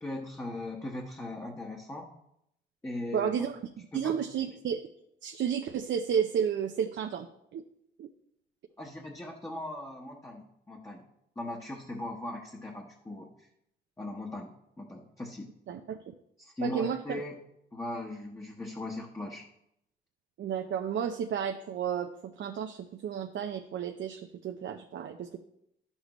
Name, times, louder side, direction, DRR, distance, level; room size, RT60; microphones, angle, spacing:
voice 1, 0.0-2.1 2.8-3.4 3.9-4.3 8.8-11.0 11.4-13.5 14.0-15.5 16.4-17.4 17.7-19.4, left 1 dB, 15° left, -1 dB, 1.1 m, -39 dB
voice 2, 3.1-3.6 3.9-4.8 5.2-7.6 8.0-8.1 15.7-16.0 16.6-17.0 20.4-25.4, right 8 dB, 65° right, 5 dB, 0.6 m, -32 dB
11.5 x 7.1 x 3.1 m, 0.77 s
cardioid pair, 95°, 20 cm